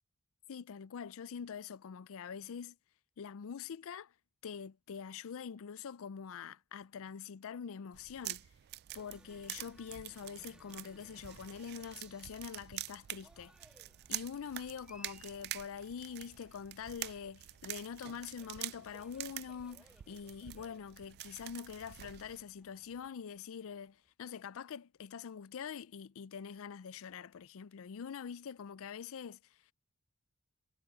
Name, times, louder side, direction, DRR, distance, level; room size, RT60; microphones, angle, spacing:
voice 1, 0.5-2.8 3.2-4.1 4.4-8.5 8.9-13.5 14.1-29.4, left 7 dB, 65° left, 0.4 m, -45 dB
sound 1, 7.9-22.4, right 15 dB, 50° right, 0.3 m, -47 dB
Cheering, 8.9-24.1, right 1 dB, 5° right, 1.6 m, -65 dB
sound 2, 13.0-23.1, left 2 dB, 85° left, 1.1 m, -71 dB
head